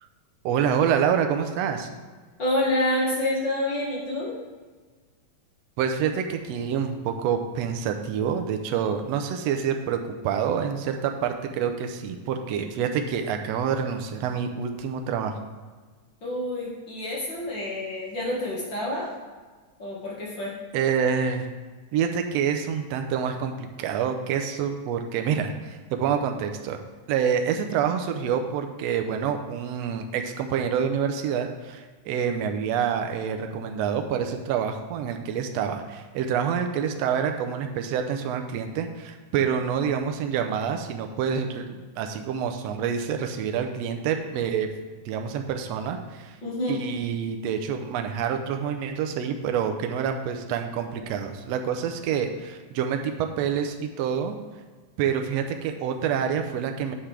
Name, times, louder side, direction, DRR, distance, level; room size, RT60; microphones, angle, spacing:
voice 1, 0.4-1.9 5.8-10.0 10.2-15.4 20.7-21.5 21.9-26.8 27.1-44.7 45.0-46.4 46.7-54.3 55.0-56.9, right 7 dB, 75° right, 5 dB, 1.7 m, -27 dB
voice 2, 2.4-4.3 16.2-19.1 19.8-20.5 46.4-46.8, left 1 dB, 45° left, -5 dB, 2.1 m, -28 dB
9.4 x 7.2 x 3.4 m, 1.4 s
omnidirectional pair, 3.4 m